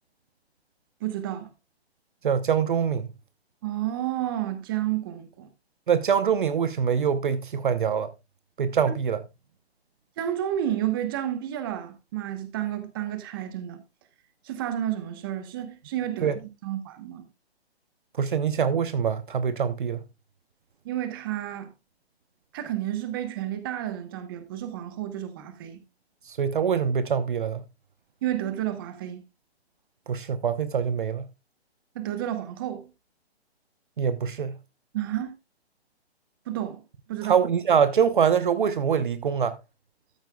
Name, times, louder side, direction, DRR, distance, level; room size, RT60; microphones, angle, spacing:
voice 1, 1.0-1.5 3.6-5.5 10.2-13.8 14.4-16.3 16.6-17.2 20.8-21.7 22.5-25.8 28.2-29.2 31.9-32.9 34.9-35.3 36.5-36.8 37.1-37.4, right 12 dB, 20° right, 1.0 m, -31 dB
voice 2, 2.2-3.1 5.9-8.1 8.6-9.2 16.2-16.4 18.2-20.0 26.3-27.6 30.1-31.3 34.0-34.6 37.2-39.6, right 7 dB, 50° right, 0.8 m, -24 dB
13.5 x 9.0 x 2.2 m
hypercardioid pair, 160°, 33 cm